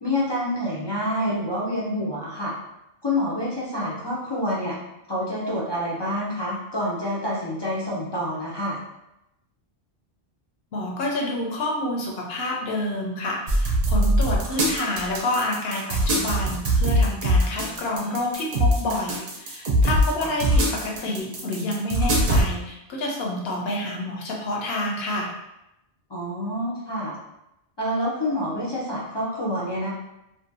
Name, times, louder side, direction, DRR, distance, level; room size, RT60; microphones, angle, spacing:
voice 1, 0.0-2.5 3.0-4.8 5.1-8.8 20.2-20.3 26.1-27.2 27.8-29.9, left 1 dB, 35° left, -6 dB, 0.4 m, -27 dB
voice 2, 10.7-25.3, left 1 dB, 70° left, -2 dB, 0.9 m, -28 dB
sound 1, 13.5-22.4, equal, 55° right, 0.6 m, -22 dB
2.6 x 2.1 x 2.6 m, 0.87 s
omnidirectional pair, 1.1 m